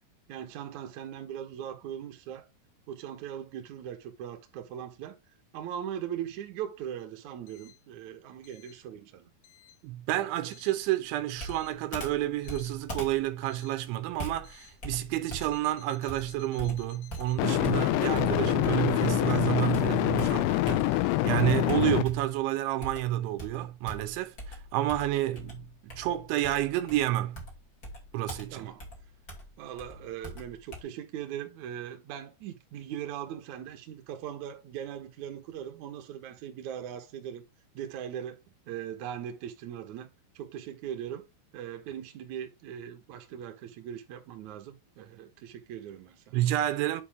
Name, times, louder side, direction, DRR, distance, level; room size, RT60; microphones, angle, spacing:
voice 1, 0.3-2.5 2.9-5.2 5.5-9.3 28.5-28.9 29.6-37.4 37.7-40.1 40.4-41.2 41.5-46.4, right 9 dB, 65° right, 1.9 m, -40 dB
voice 2, 9.8-27.4 28.1-28.7 46.3-47.0, right 14 dB, 85° right, 3.2 m, -30 dB
Computer keyboard, 11.4-19.0 19.3-21.2 21.7-22.4 22.8-30.8, equal, 30° left, 1.9 m, -42 dB
sound 1, 12.5-12.7 17.4-22.0, left 16 dB, 85° left, 3.1 m, -26 dB
9.9 x 4.7 x 3.6 m
omnidirectional pair, 5.3 m